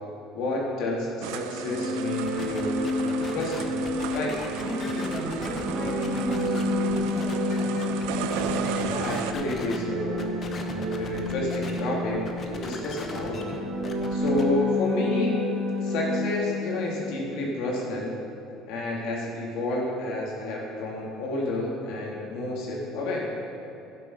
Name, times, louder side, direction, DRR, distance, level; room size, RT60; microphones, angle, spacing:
voice 1, 0.3-2.7 3.3-3.8 4.1-4.4 8.8-13.4 14.1-15.3 15.8-18.2 18.7-23.3, left 2 dB, 70° left, -3 dB, 2.5 m, -30 dB
sound 1, 1.2-9.3, right 9 dB, 85° right, 0.5 m, -36 dB
sound 2, 1.3-17.0, left 1 dB, 55° right, 1.3 m, -30 dB
sound 3, 2.3-9.8 10.2-11.8 12.1-14.4, left 3 dB, 30° left, 1.0 m, -40 dB
voice 2, 4.6-8.2, equal, 20° right, -5 dB, 2.8 m, -35 dB
12.5 x 7.6 x 5.4 m, 2.8 s
cardioid pair, 150°, 0 cm